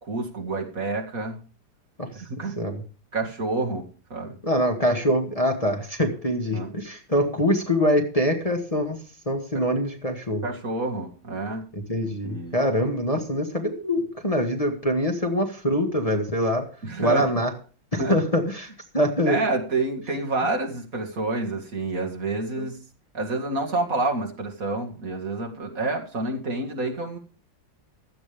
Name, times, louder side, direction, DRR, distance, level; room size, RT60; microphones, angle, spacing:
voice 1, 0.0-1.4 2.1-2.6 3.1-4.4 6.5-6.7 9.5-9.6 10.4-11.7 12.0-12.6 16.8-17.3 17.9-18.2 19.3-22.8 23.1-27.2, right 2 dB, 45° right, 1 dB, 2.4 m, -28 dB
voice 2, 4.4-9.0 9.3-10.4 11.9-16.6 17.0-17.5 17.9-19.4 22.6-22.7, equal, 20° left, 2 dB, 1.9 m, -24 dB
16.0 x 12.0 x 3.5 m, 0.38 s
omnidirectional pair, 2.1 m